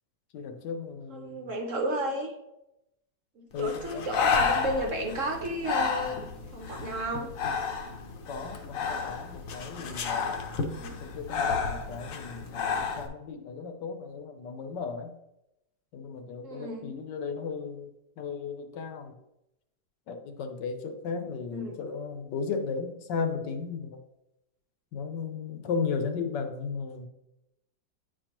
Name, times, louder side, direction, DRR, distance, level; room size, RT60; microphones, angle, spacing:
voice 1, 0.3-1.5 3.5-4.1 8.3-10.4 11.0-15.1 15.9-17.9 18.2-19.1 20.1-24.0 24.9-27.1, left 5 dB, 75° left, 7 dB, 1.3 m, -35 dB
voice 2, 1.1-2.3 3.4-6.2 6.5-7.3 10.6-10.9 16.4-16.9 21.5-21.8, right 1 dB, 55° right, 3 dB, 1.0 m, -33 dB
Breathing, 3.6-13.1, left 5 dB, 60° left, 1.0 m, -31 dB
9.3 x 4.4 x 2.9 m, 0.89 s
omnidirectional pair, 2.0 m